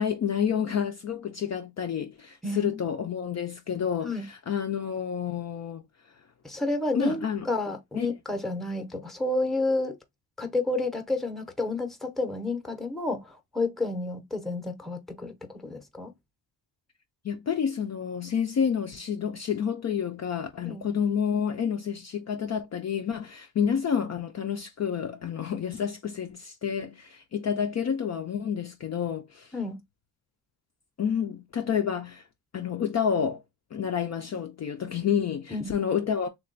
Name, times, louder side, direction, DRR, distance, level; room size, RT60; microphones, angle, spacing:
voice 1, 0.0-5.8 6.1-6.2 6.9-7.5 8.0-8.1 17.2-29.5 31.0-32.2 32.5-33.4 33.7-36.3, left 7 dB, 40° left, 0.4 m, -29 dB
voice 2, 2.4-2.8 4.0-4.3 6.4-9.9 10.4-16.1 20.6-20.9 29.5-29.8 35.5-35.8, left 2 dB, ahead, 0.7 m, -30 dB
3.2 x 2.2 x 3.8 m
wide cardioid pair, 130°, 42 cm